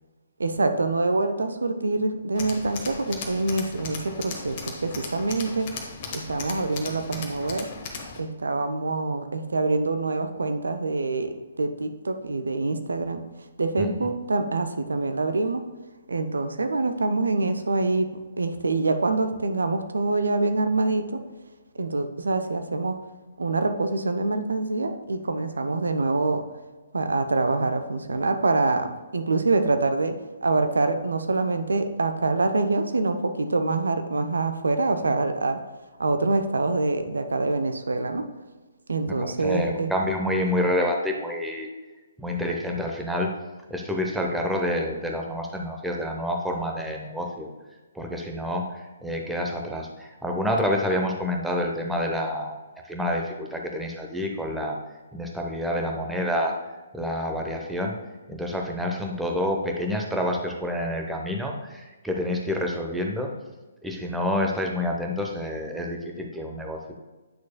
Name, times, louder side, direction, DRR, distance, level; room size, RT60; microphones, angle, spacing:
voice 1, 0.4-5.7 6.1-7.7 8.2-13.2 13.6-15.6 16.1-18.1 18.4-21.2 21.8-23.0 23.4-26.4 26.9-30.1 30.4-35.6 36.0-38.2 38.9-39.9, right 3 dB, 65° right, 7 dB, 0.6 m, -25 dB
Tools, 2.3-8.2, left 4 dB, 35° left, 1.1 m, -37 dB
voice 2, 39.1-41.7 42.2-43.3 43.7-47.5 47.9-52.5 52.9-54.8 55.1-56.6 56.9-57.9 58.3-63.3 63.8-66.9, left 1 dB, 5° right, 1 dB, 0.8 m, -28 dB
9.5 x 6.2 x 2.2 m, 1.2 s
figure-of-eight pair, 130°, 0 cm